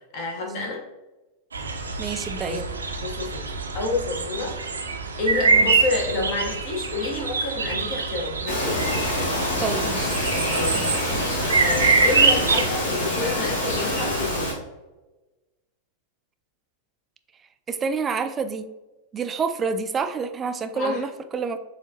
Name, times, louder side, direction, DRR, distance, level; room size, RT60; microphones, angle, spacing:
voice 1, 0.1-0.8 2.5-2.6 3.0-3.5 3.7-4.8 5.2-8.8 10.5-14.6 20.7-21.0, left 3 dB, 40° left, 0 dB, 1.1 m, -29 dB
sound 1, 1.5-12.6, right 4 dB, 75° right, 0.5 m, -25 dB
voice 2, 2.0-2.7 5.4-5.7 9.6-10.2 10.7-11.3 17.7-18.6 19.1-21.6, right 5 dB, 20° right, 9 dB, 0.3 m, -28 dB
Bird vocalization bird call bird song, 8.5-14.5, left 1 dB, 65° left, 1.4 m, -26 dB
6.8 x 2.5 x 2.8 m, 1.1 s
figure-of-eight pair, 90°, 0 cm